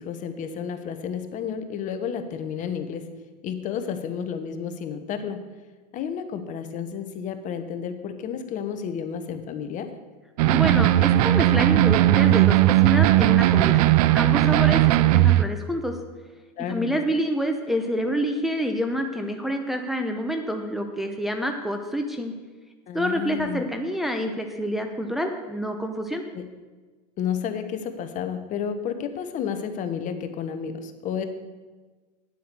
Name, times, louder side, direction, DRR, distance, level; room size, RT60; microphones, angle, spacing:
voice 1, 0.0-3.1 3.4-5.4 5.9-9.9 16.6-17.0 22.9-23.7 26.3-26.4 27.2-31.2, left 7 dB, 40° left, 8 dB, 1.2 m, -31 dB
voice 2, 10.4-13.8 14.1-15.9 16.7-22.3 22.9-26.2, equal, ahead, 3 dB, 0.9 m, -27 dB
sound 1, 10.4-15.5, right 15 dB, 65° right, 0.5 m, -18 dB
10.0 x 7.7 x 6.9 m, 1.3 s
hypercardioid pair, 115°, 21 cm